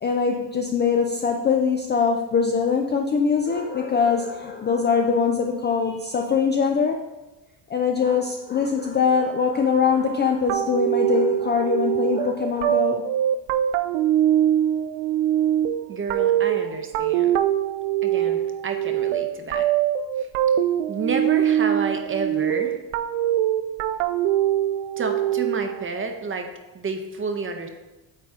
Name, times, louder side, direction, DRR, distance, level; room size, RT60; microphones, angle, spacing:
voice 1, 0.0-7.0 7.7-13.0, left 5 dB, 25° left, 2 dB, 0.3 m, -22 dB
sound 1, 10.5-25.8, right 11 dB, 85° right, 0.6 m, -23 dB
voice 2, 15.9-17.4 18.0-19.7 20.2-20.3 20.9-22.8 25.0-27.7, right 4 dB, 25° right, 5 dB, 0.7 m, -30 dB
8.8 x 4.2 x 3.6 m, 1.1 s
cardioid pair, 125°, 50 cm